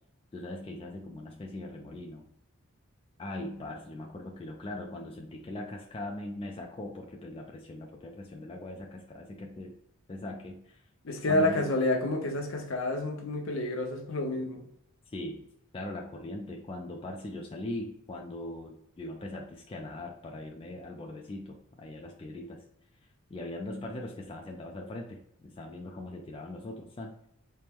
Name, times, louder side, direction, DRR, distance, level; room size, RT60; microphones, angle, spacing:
voice 1, 0.3-2.3 3.2-9.7 10.1-10.9 11.3-11.7 15.1-15.4 15.7-22.6 23.3-27.3, left 1 dB, 25° left, 0.3 m, -40 dB
voice 2, 11.0-14.7, left 1 dB, 65° left, 0.7 m, -29 dB
4.3 x 2.1 x 3.4 m
head